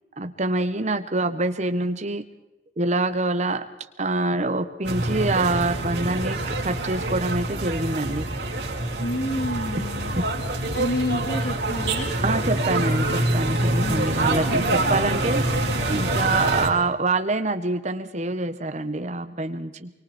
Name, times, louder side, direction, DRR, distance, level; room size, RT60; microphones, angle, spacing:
voice 1, 0.2-2.2 2.8-3.7 4.0-8.3 10.2-10.3 12.2-15.5 15.9-19.9, right 2 dB, 40° right, 9 dB, 1.4 m, -25 dB
sound 1, 4.8-16.7, right 2 dB, 65° right, 4.8 m, -25 dB
voice 2, 9.0-10.1 10.7-12.1 13.7-14.3, left 1 dB, 60° left, 3 dB, 2.3 m, -29 dB
25.5 x 24.0 x 4.4 m, 1.0 s
head